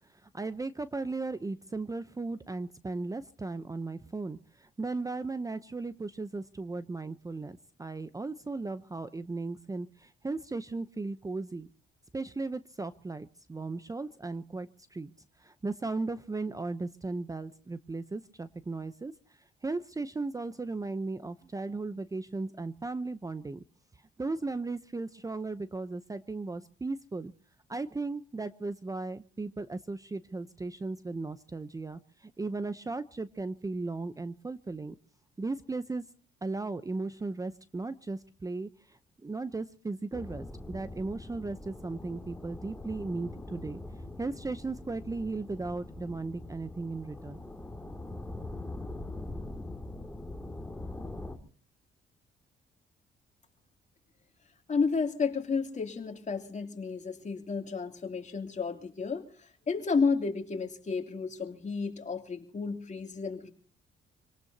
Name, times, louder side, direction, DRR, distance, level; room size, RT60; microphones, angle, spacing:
voice 1, 0.2-11.7 12.1-15.1 15.4-19.1 19.6-23.6 24.2-27.3 27.7-34.9 35.4-36.0 36.4-43.8 44.2-47.4, right 3 dB, 15° right, 13 dB, 0.7 m, -36 dB
sound 1, 40.1-51.4, left 2 dB, 5° left, 2.4 m, -42 dB
voice 2, 54.7-63.5, left 5 dB, 35° left, 4 dB, 2.8 m, -32 dB
26.5 x 18.5 x 2.8 m, 0.43 s
cardioid pair, 90°, 20 cm